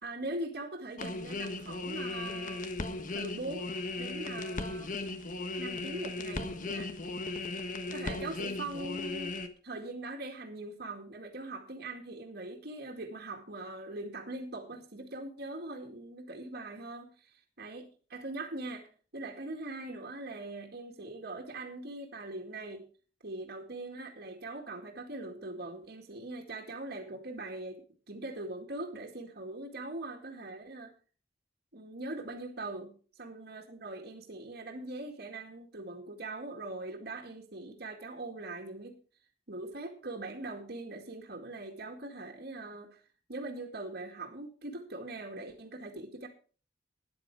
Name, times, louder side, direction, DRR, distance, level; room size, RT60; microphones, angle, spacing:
voice 1, 0.0-2.7 3.1-3.7 4.0-4.9 5.6-6.9 7.9-9.4 9.6-17.3 17.6-18.9 19.1-22.8 23.2-27.8 28.1-30.9 31.7-32.9 33.2-39.0 39.5-43.0 43.3-46.3, right 2 dB, 60° right, 1 dB, 2.2 m, -41 dB
sound 1, 1.0-9.5, left 2 dB, 45° left, 1.3 m, -37 dB
13.0 x 10.0 x 4.8 m, 0.40 s
head